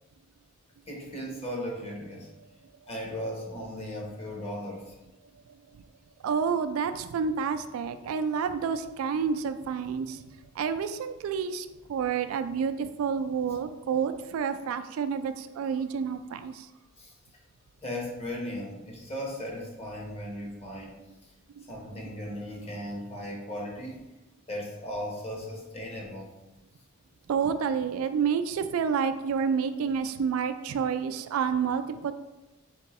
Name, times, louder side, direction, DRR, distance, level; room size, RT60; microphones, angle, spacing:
voice 1, 0.9-2.3 2.9-4.9 17.0-17.1 17.8-21.0 21.7-24.0 24.5-26.3, equal, 30° left, -1 dB, 1.0 m, -37 dB
voice 2, 6.2-10.2 10.6-16.7 27.3-32.1, right 6 dB, 85° right, 10 dB, 0.3 m, -29 dB
4.4 x 3.5 x 3.0 m, 1.0 s
head